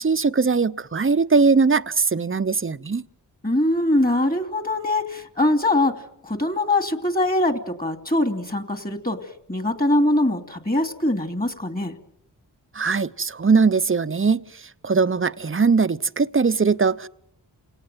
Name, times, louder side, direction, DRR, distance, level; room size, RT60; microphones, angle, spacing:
voice 1, 0.0-3.0 12.7-17.1, right 4 dB, 30° right, 0.9 m, -20 dB
voice 2, 3.4-5.9 6.2-9.2 9.5-12.0, left 1 dB, 20° left, 2.8 m, -22 dB
28.5 x 18.0 x 9.3 m
cardioid pair, 55°, 42 cm